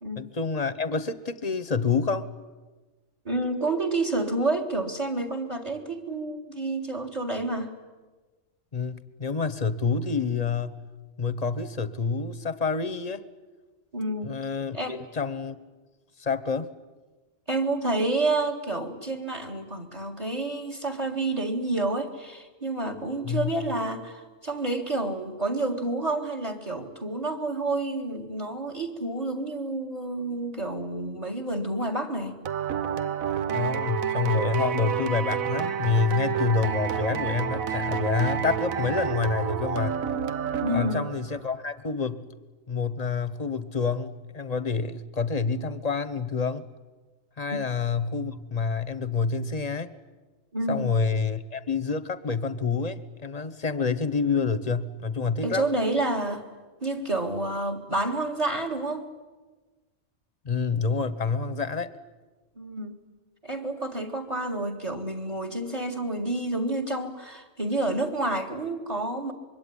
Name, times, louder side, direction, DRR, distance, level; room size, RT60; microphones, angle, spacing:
voice 1, 0.2-2.3 8.7-10.8 11.2-13.2 14.2-15.6 16.2-16.7 23.2-23.6 33.5-39.9 40.7-42.3 42.7-46.6 47.4-49.9 50.7-55.6 60.4-61.9, left 5 dB, 30° left, 14 dB, 1.1 m, -28 dB
voice 2, 3.3-7.7 13.9-14.4 14.7-15.0 17.5-32.4 40.6-41.1 47.5-47.6 50.5-50.9 55.4-56.5 56.8-59.1 62.6-63.0 63.4-69.3, right 2 dB, 30° right, 7 dB, 2.1 m, -29 dB
sound 1, 32.5-41.4, right 7 dB, 85° right, 1.5 m, -29 dB
25.5 x 22.5 x 10.0 m, 1.3 s
omnidirectional pair, 1.4 m